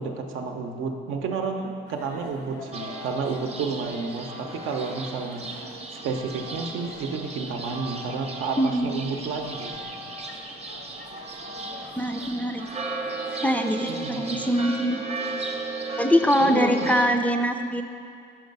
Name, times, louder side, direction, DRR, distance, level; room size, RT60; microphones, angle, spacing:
voice 1, 0.0-5.4 5.9-9.9 13.9-14.4 16.4-17.0, right 4 dB, 85° right, 4 dB, 0.7 m, -31 dB
sound 1, 1.9-14.5, left 2 dB, 90° left, 0.9 m, -45 dB
sound 2, 2.7-17.1, right 3 dB, 30° right, 0.7 m, -35 dB
voice 2, 8.6-9.0 12.0-12.7 13.4-15.0 16.0-17.8, equal, 5° left, 4 dB, 0.3 m, -23 dB
5.9 x 4.7 x 5.3 m, 2.4 s
cardioid pair, 90°, 20 cm